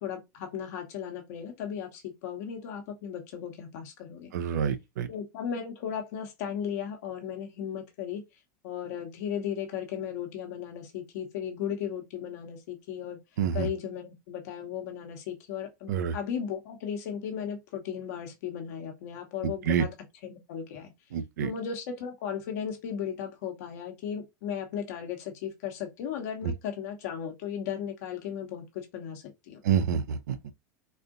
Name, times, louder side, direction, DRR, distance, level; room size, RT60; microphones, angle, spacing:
voice 1, 0.0-4.3 5.1-8.2 8.6-13.2 13.5-19.9 20.2-20.9 21.4-29.6, left 8 dB, 60° left, 1.0 m, -36 dB
voice 2, 4.3-5.1 13.4-13.7 15.9-16.2 19.4-19.8 21.1-21.5 29.6-30.4, right 8 dB, 70° right, 0.5 m, -27 dB
4.1 x 2.6 x 2.5 m
hypercardioid pair, 90°, 10 cm